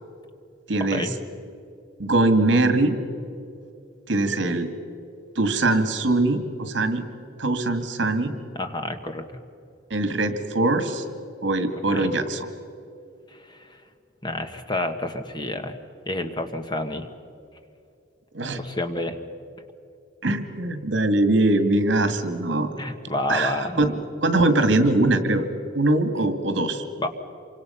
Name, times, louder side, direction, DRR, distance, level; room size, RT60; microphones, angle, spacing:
voice 1, 0.7-1.1 2.0-3.0 4.1-4.7 5.4-7.0 7.4-8.3 9.9-11.0 11.4-12.5 18.3-18.6 20.2-22.7 23.3-25.5 25.7-26.8, right 2 dB, 70° right, 9 dB, 2.0 m, -22 dB
voice 2, 8.5-9.2 11.8-12.1 13.5-13.6 14.2-15.8 16.0-17.1 18.6-19.2 22.8-23.8 27.0-27.1, left 1 dB, 25° left, 7 dB, 1.4 m, -29 dB
27.5 x 25.0 x 5.7 m, 2.5 s
head